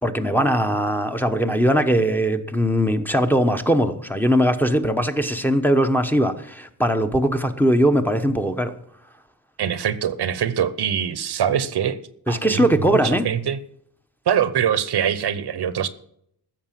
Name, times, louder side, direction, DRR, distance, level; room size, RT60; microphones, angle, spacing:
voice 1, 0.0-8.7 12.3-13.3, equal, 5° left, 5 dB, 0.9 m, -20 dB
voice 2, 9.6-12.0 12.3-13.6 14.3-15.9, right 9 dB, 75° right, 15 dB, 1.0 m, -23 dB
15.0 x 6.7 x 7.5 m, 0.70 s
wide cardioid pair, 135°, 40 cm